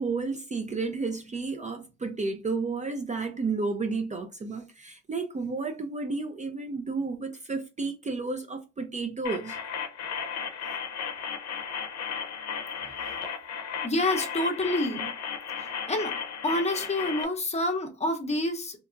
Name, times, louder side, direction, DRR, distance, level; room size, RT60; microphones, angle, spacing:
voice 1, 0.0-9.6, right 4 dB, 25° right, 0.4 m, -32 dB
sound 1, 9.2-17.2, left 7 dB, 60° left, 0.6 m, -35 dB
voice 2, 13.8-15.1 15.6-16.1 16.4-18.8, left 1 dB, 20° left, 0.7 m, -28 dB
2.9 x 2.3 x 2.4 m
cardioid pair, 90°, 30 cm